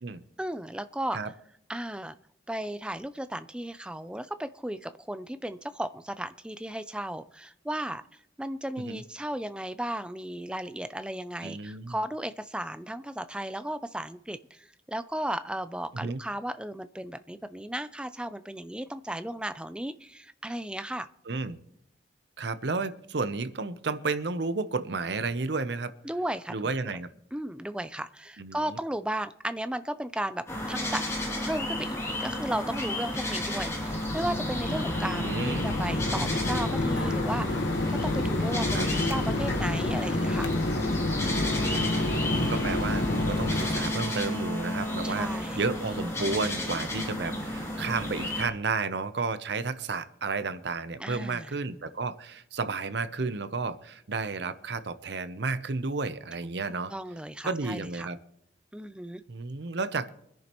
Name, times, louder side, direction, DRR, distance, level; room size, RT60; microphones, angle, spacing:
voice 1, 0.4-1.2 1.7-2.1 2.5-8.0 8.4-21.1 26.0-26.9 27.3-31.0 31.4-40.5 45.0-45.6 51.0-51.5 56.9-58.1 58.7-59.2, right 1 dB, 5° right, 11 dB, 0.4 m, -35 dB
voice 2, 11.4-12.0 15.9-16.2 21.3-21.6 22.4-25.9 26.5-27.1 28.4-28.8 35.2-35.7 38.7-38.9 41.7-56.9 57.4-58.2 59.3-60.1, right 3 dB, 65° right, 12 dB, 0.7 m, -32 dB
sound 1, 30.5-48.5, left 1 dB, 15° left, 2.6 m, -32 dB
Mechanisms, 33.1-44.1, left 2 dB, 70° left, 1.2 m, -29 dB
24.5 x 10.5 x 3.0 m, 0.76 s
head